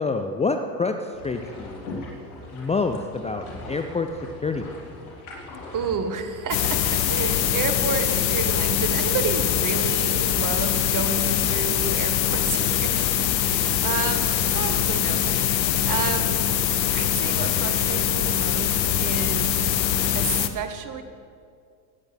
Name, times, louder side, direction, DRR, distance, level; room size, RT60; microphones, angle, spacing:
voice 1, 0.0-1.9 2.5-4.1 4.4-4.8, left 4 dB, 15° left, 6 dB, 0.5 m, -27 dB
sound 1, 1.1-20.4, left 1 dB, 65° left, 3.7 m, -45 dB
voice 2, 5.7-13.1 13.4-16.4 16.9-19.5 20.1-21.0, right 6 dB, 40° right, 8 dB, 1.4 m, -31 dB
sound 2, 6.5-20.5, left 10 dB, 80° left, 0.9 m, -23 dB
22.0 x 10.0 x 3.5 m, 2.2 s
hypercardioid pair, 75°, 50 cm